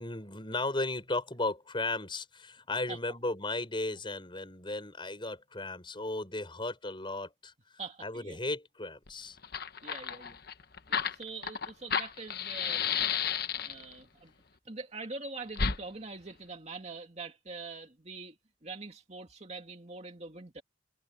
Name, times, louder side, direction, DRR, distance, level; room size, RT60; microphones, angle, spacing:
voice 1, 0.0-7.5 8.0-9.4, left 2 dB, 25° left, 6.5 m, -35 dB
voice 2, 7.8-8.4 9.8-10.4 10.9-13.2 13.5-14.3 14.7-20.6, right 3 dB, 35° right, 2.2 m, -44 dB
Fire, 9.1-9.2 9.4-13.9 15.5-15.8, left 7 dB, 55° left, 1.1 m, -32 dB
head